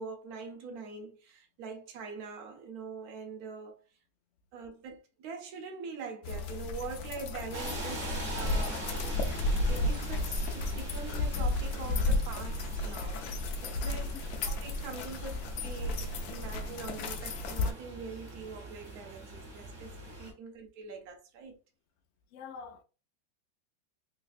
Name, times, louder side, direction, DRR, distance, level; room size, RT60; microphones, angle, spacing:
voice 1, 0.0-3.8 4.5-8.8 9.7-14.1 14.4-21.6, right 4 dB, 65° right, 1.2 m, -44 dB
sound 1, 6.2-17.7, left 2 dB, 70° left, 1.0 m, -33 dB
sound 2, 7.5-20.3, right 2 dB, 35° right, 1.0 m, -43 dB
voice 2, 22.3-22.8, left 6 dB, 90° left, 0.6 m, -45 dB
3.4 x 3.2 x 2.4 m
omnidirectional pair, 1.9 m